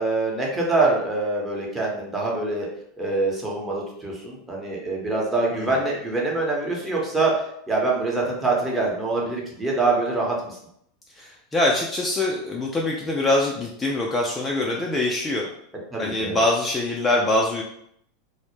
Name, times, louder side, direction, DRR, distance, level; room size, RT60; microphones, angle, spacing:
voice 1, 0.0-2.7 3.0-7.3 7.7-10.6 15.9-16.4, right 3 dB, 15° right, -3 dB, 0.9 m, -24 dB
voice 2, 11.1-15.5 16.0-17.6, left 2 dB, 20° left, -2 dB, 0.4 m, -24 dB
2.0 x 2.0 x 3.1 m, 0.71 s
hypercardioid pair, 95°, 0 cm